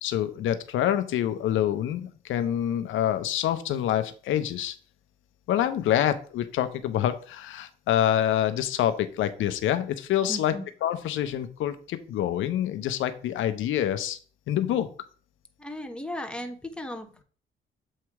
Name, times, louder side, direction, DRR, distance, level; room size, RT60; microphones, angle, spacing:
voice 1, 0.0-4.7 5.5-10.5 10.8-14.2 14.5-14.9, left 11 dB, 80° left, 10 dB, 0.7 m, -26 dB
voice 2, 10.3-10.7 15.6-17.2, left 1 dB, 5° left, 5 dB, 1.0 m, -36 dB
7.5 x 2.9 x 4.7 m, 0.40 s
cardioid pair, 90°, 20 cm